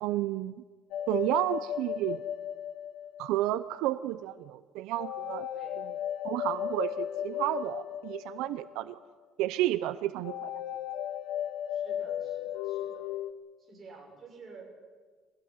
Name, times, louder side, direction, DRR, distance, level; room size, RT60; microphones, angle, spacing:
voice 1, 0.0-0.6 1.1-2.2 3.2-5.5 6.2-9.0 9.4-10.5, right 15 dB, 80° right, 14 dB, 0.6 m, -31 dB
sound 1, 0.9-3.6 5.0-8.9 10.2-13.3, left 10 dB, 80° left, 0.9 m, -35 dB
voice 2, 5.5-5.8 9.8-10.1 11.7-13.1 13.6-14.6, right 4 dB, 25° right, 0 dB, 6.9 m, -51 dB
22.0 x 16.5 x 9.6 m, 1.5 s
cardioid pair, 145°, 0 cm